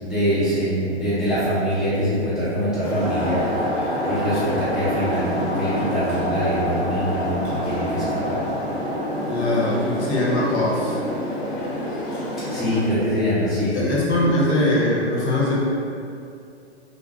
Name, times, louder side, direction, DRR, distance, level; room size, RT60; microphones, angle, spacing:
voice 1, 0.0-3.5 4.0-8.4 12.5-14.0, equal, ahead, -14 dB, 0.4 m, -24 dB
sound 1, 2.8-12.8, left 1 dB, 45° left, 0.6 m, -29 dB
sound 2, 3.0-12.1, equal, 65° right, 0.7 m, -30 dB
voice 2, 9.3-11.0 13.7-15.6, left 1 dB, 80° left, -5 dB, 0.8 m, -21 dB
2.5 x 2.1 x 2.3 m, 2.5 s
hypercardioid pair, 120°, 34 cm